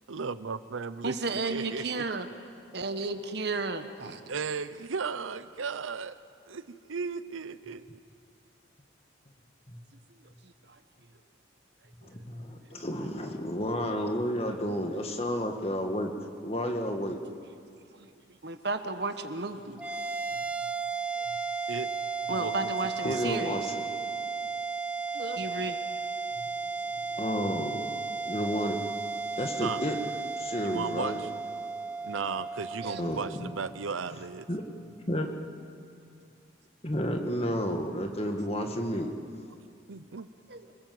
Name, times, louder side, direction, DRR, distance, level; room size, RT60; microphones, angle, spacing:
voice 1, 0.1-2.0 4.3-6.2 6.5-7.8 21.7-21.9 22.3-23.3 29.6-29.9 30.6-31.3 32.0-34.5 39.9-40.3, right 5 dB, 85° right, 14 dB, 0.7 m, -36 dB
voice 2, 1.0-2.3 2.7-4.2 10.4-10.5 17.9-18.1 18.4-19.8 22.3-23.7 25.1-25.8 32.8-33.0 40.5-40.7, right 3 dB, 55° right, 9 dB, 1.3 m, -33 dB
voice 3, 12.1-16.1 16.4-17.2 23.0-23.8 26.4-26.5 27.1-27.9 28.3-28.8 29.3-30.0 30.4-31.2 33.0-33.5 34.5-34.6 35.1-35.3 36.8-39.1, equal, 30° left, 4 dB, 1.8 m, -31 dB
sound 1, 19.8-34.4, right 4 dB, 5° right, 1.1 m, -34 dB
27.0 x 20.5 x 7.9 m, 2.4 s
head